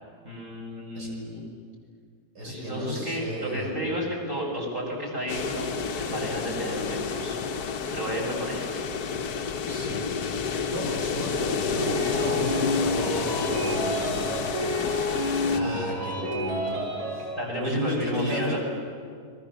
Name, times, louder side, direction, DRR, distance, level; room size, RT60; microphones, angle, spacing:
voice 1, 0.2-1.4 2.4-7.4 7.9-8.8 15.6-15.9 17.4-18.6, equal, 30° right, -3 dB, 6.7 m, -32 dB
voice 2, 2.3-3.7 9.7-10.0 10.7-14.5 15.4-18.6, equal, 90° right, -1 dB, 6.3 m, -34 dB
sound 1, 5.3-15.6, left 6 dB, 70° left, 1.6 m, -30 dB
sound 2, 11.8-17.3, left 1 dB, 70° right, 6.6 m, -29 dB
30.0 x 21.5 x 7.4 m, 2.1 s
omnidirectional pair, 1.8 m